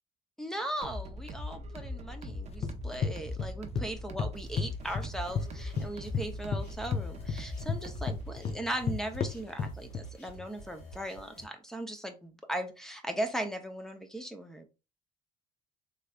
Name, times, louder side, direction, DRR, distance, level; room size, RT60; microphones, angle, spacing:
voice 1, 0.4-14.7, right 1 dB, 5° left, 0.7 m, -38 dB
sound 1, 0.8-8.3, left 1 dB, 40° right, 0.6 m, -41 dB
sound 2, 2.3-3.9 4.2-5.5 5.8-10.1, left 5 dB, 40° left, 0.5 m, -33 dB
sound 3, 4.3-11.4, right 2 dB, 75° left, 2.0 m, -49 dB
3.4 x 3.2 x 2.4 m
cardioid pair, 110°, 17 cm